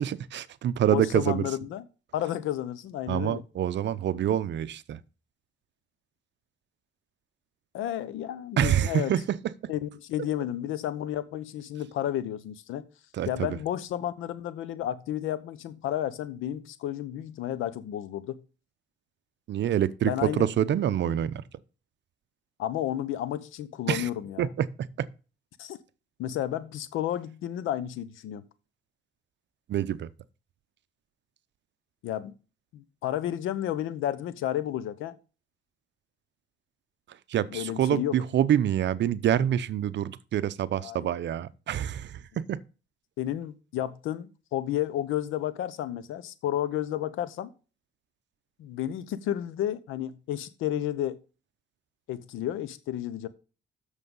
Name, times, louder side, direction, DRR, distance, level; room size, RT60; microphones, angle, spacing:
voice 1, 0.0-1.4 3.1-5.0 8.6-9.4 13.1-13.6 19.5-21.4 23.9-24.1 24.4-24.7 25.0-25.1 29.7-30.1 37.3-42.6, right 10 dB, 65° right, 0.7 m, -26 dB
voice 2, 0.9-1.9 2.1-3.4 7.7-9.1 9.7-12.8 13.3-18.4 20.0-20.5 22.6-24.5 25.6-25.8 26.2-28.4 32.0-32.3 32.7-35.2 37.5-38.1 40.8-41.1 43.2-47.5 48.6-51.2 52.1-53.3, left 12 dB, 90° left, 1.0 m, -32 dB
8.2 x 6.8 x 5.5 m
cardioid pair, 90°, 20 cm